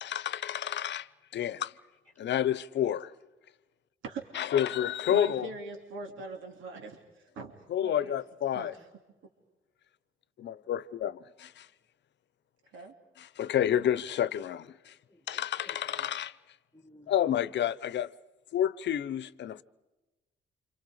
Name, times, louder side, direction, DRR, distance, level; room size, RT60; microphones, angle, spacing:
voice 1, 0.0-1.7 2.2-3.1 4.3-5.5 7.7-8.7 10.4-11.7 13.2-14.9 15.3-16.3 17.1-18.1 18.5-19.6, left 10 dB, 65° left, 0.9 m, -30 dB
voice 2, 4.0-4.5 5.1-7.5 7.8-8.2 8.5-8.8 12.7-12.9, right 3 dB, 80° right, 3.2 m, -42 dB
voice 3, 15.1-16.1 16.7-17.4, left 1 dB, 10° left, 1.9 m, -57 dB
30.0 x 27.0 x 5.0 m
cardioid pair, 90°, 20 cm